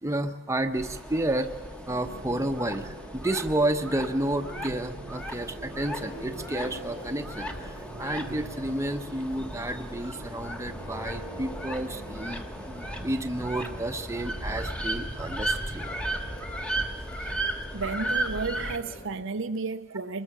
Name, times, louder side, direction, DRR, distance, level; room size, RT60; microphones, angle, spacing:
voice 1, 0.0-1.5 1.9-15.9, right 1 dB, 15° right, 6 dB, 1.0 m, -31 dB
sound 1, 0.7-18.8, right 1 dB, 5° left, 1.2 m, -36 dB
sound 2, 1.6-16.6, right 2 dB, 40° right, 1.1 m, -45 dB
Church bell, 5.0-19.2, left 1 dB, 30° left, 2.8 m, -44 dB
voice 2, 17.7-20.2, right 4 dB, 65° right, 8 dB, 0.8 m, -33 dB
24.0 x 21.0 x 6.1 m, 1.3 s
head